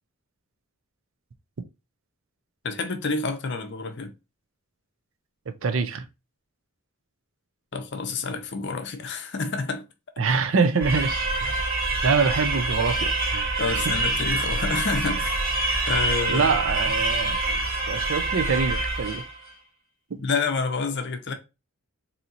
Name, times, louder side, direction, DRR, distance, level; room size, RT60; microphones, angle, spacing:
voice 1, 2.6-4.1 7.7-9.8 13.6-15.4 15.9-16.5 20.2-21.3, left 4 dB, 50° left, 0.6 m, -28 dB
voice 2, 5.6-6.0 10.2-11.6 12.0-13.5 13.8-13.9 16.3-17.6 17.9-19.2, right 4 dB, 60° right, 0.5 m, -25 dB
sound 1, 10.8-19.4, right 2 dB, 40° right, 0.9 m, -26 dB
4.2 x 2.8 x 2.6 m
head